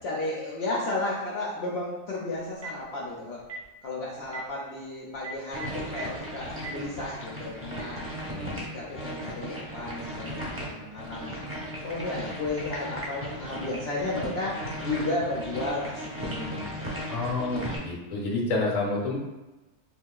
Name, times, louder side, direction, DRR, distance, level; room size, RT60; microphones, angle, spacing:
voice 1, 0.0-3.4 3.8-8.1 8.6-11.3 11.8-17.1 17.4-17.8, left 2 dB, 65° left, -4 dB, 0.8 m, -33 dB
Telephone, 2.4-2.8 3.4-3.6 4.2-4.4 5.1-6.0 6.5-6.7, right 5 dB, 65° right, 0.9 m, -38 dB
sound 1, 5.5-17.8, equal, 10° right, 0.8 m, -36 dB
voice 2, 17.1-19.1, left 2 dB, 40° left, -2 dB, 0.8 m, -29 dB
4.1 x 2.7 x 2.3 m, 1.1 s
omnidirectional pair, 1.3 m